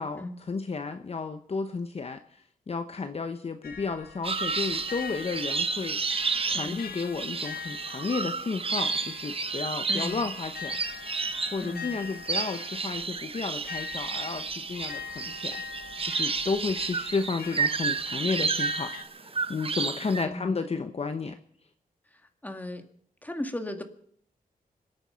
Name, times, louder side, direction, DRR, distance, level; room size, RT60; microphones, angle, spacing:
voice 1, 0.0-2.2 2.7-6.0 6.5-10.8 11.5-15.6 16.0-18.9 19.2-21.4, left 4 dB, 45° left, 8 dB, 0.9 m, -32 dB
sound 1, 3.6-19.0, left 6 dB, 80° left, 1.8 m, -43 dB
sound 2, 4.2-20.3, right 4 dB, 40° right, 0.9 m, -31 dB
voice 2, 20.2-20.5 22.4-22.8 23.2-23.8, left 1 dB, 10° left, 6 dB, 2.1 m, -35 dB
26.0 x 9.0 x 5.7 m, 0.65 s
cardioid pair, 85°, 15 cm